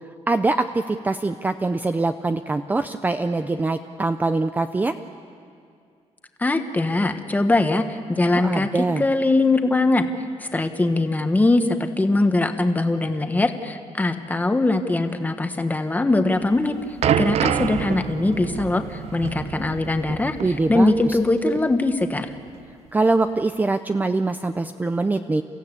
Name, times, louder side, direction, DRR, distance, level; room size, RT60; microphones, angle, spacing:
voice 1, 0.3-5.0 8.3-9.0 20.4-21.2 22.9-25.4, right 3 dB, 15° right, 9 dB, 0.5 m, -23 dB
voice 2, 6.4-10.1 10.4-16.7 17.2-20.4 20.7-22.3, left 2 dB, 15° left, 7 dB, 1.2 m, -21 dB
sound 1, 16.4-21.3 21.6-21.7 22.5-22.6, right 9 dB, 65° right, 0.5 m, -27 dB
30.0 x 15.5 x 8.4 m, 2.3 s
cardioid pair, 150°, 12 cm